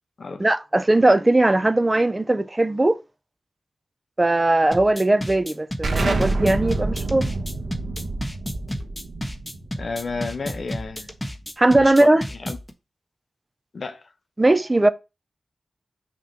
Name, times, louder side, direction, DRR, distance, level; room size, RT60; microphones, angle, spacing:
voice 1, 0.4-3.0 4.2-7.3 11.6-12.2 14.4-14.9, right 2 dB, 25° right, 0.5 m, -19 dB
sound 1, 4.7-12.7, equal, 10° left, 1.2 m, -32 dB
Explosion, 5.8-11.2, right 2 dB, 85° right, 1.1 m, -28 dB
voice 2, 9.8-11.1 11.8-12.1 12.4-12.6 13.7-14.0, left 4 dB, 65° left, 0.8 m, -31 dB
6.0 x 3.0 x 5.5 m
cardioid pair, 55°, 0 cm